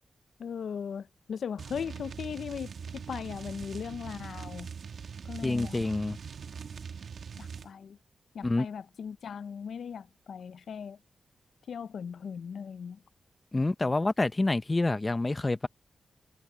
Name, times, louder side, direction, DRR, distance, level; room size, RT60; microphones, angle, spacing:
voice 1, 0.4-4.7 5.2-6.1 7.4-8.0 8.3-11.0 11.7-13.0, left 7 dB, 80° left, 0.4 m, -39 dB
sound 1, 1.6-7.7, right 6 dB, 75° right, 1.7 m, -42 dB
voice 2, 5.4-6.2 8.4-8.7 13.5-15.7, left 2 dB, 25° left, 0.8 m, -27 dB
wide cardioid pair, 90°, 0 cm